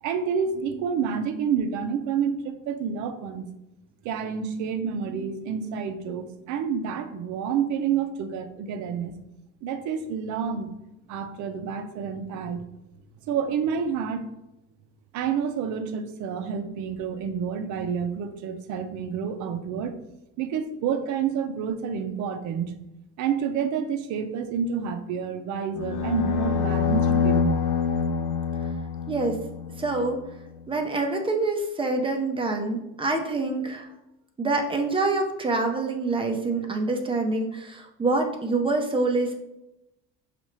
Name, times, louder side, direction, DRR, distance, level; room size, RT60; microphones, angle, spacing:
voice 1, 0.0-3.5 4.0-9.2 9.6-10.7 11.1-12.6 13.3-14.2 15.1-20.0 20.4-22.7 23.2-27.6, right 7 dB, 60° right, 8 dB, 0.6 m, -29 dB
sound 1, 25.8-30.0, left 5 dB, 65° left, 0.6 m, -25 dB
voice 2, 29.1-29.4 29.8-30.2 30.7-33.9 34.4-39.4, right 3 dB, 15° right, 3 dB, 0.6 m, -26 dB
5.4 x 2.5 x 3.1 m, 0.91 s
cardioid pair, 120°, 34 cm